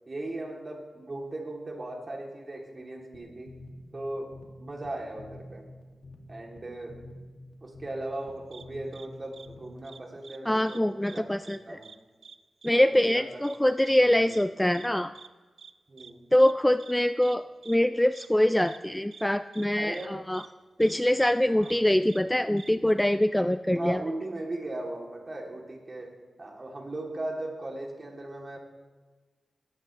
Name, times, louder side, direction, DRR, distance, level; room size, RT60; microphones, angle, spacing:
voice 1, 0.1-3.6 3.9-5.7 6.3-7.0 7.6-11.9 12.7-13.4 14.0-14.7 15.9-16.2 19.8-20.2 21.5-21.7 23.7-28.6, right 2 dB, 35° right, 0 dB, 3.0 m, -38 dB
sound 1, 3.1-10.0, left 1 dB, 60° left, 2.2 m, -49 dB
sound 2, 8.5-8.6 8.9-9.1 9.3-9.5 9.8-10.4 10.6-10.8 11.0-11.6 11.8-12.0 12.2-12.4 12.6-12.7 13.0-13.2 13.4-13.6 13.9-14.0 14.3-14.4 14.7-14.9 15.2-15.3 15.6-15.7 16.0-16.1 16.4-16.5 16.8-16.9 17.2-17.4 17.6-17.8 18.1-18.3 18.7-18.8 19.1-19.2 19.5-19.7 19.9-20.1 20.3-20.5 20.8-20.9 21.2-21.3 21.6-21.8 22.1-22.2 22.6-22.7, right 6 dB, 85° right, 0.6 m, -48 dB
voice 2, 10.5-11.8 12.6-15.1 16.3-20.4 20.8-24.0, left 1 dB, 5° left, 11 dB, 0.3 m, -24 dB
20.5 x 16.0 x 3.3 m, 1.3 s
wide cardioid pair, 120°, 0 cm